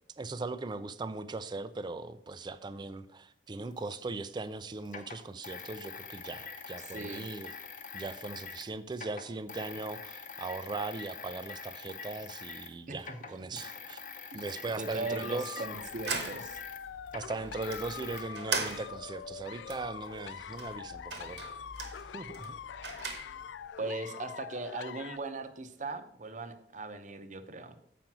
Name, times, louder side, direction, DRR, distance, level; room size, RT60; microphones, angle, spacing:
voice 1, 0.2-7.6 7.9-14.0 14.3-15.6 17.1-21.4 22.1-22.6, right 3 dB, 25° right, 12 dB, 0.3 m, -39 dB
sound 1, 3.8-3.9 4.9-8.7 8.9-12.7 13.0-18.2, left 5 dB, 50° left, 0.9 m, -45 dB
voice 2, 6.9-7.3 12.9-13.2 14.8-16.6 23.8-27.8, right 3 dB, 45° right, 9 dB, 0.7 m, -39 dB
sound 2, 15.1-25.2, left 8 dB, 85° left, 0.3 m, -44 dB
sound 3, 15.6-23.7, right 5 dB, 80° right, 1.1 m, -40 dB
7.5 x 5.1 x 5.9 m, 0.71 s
head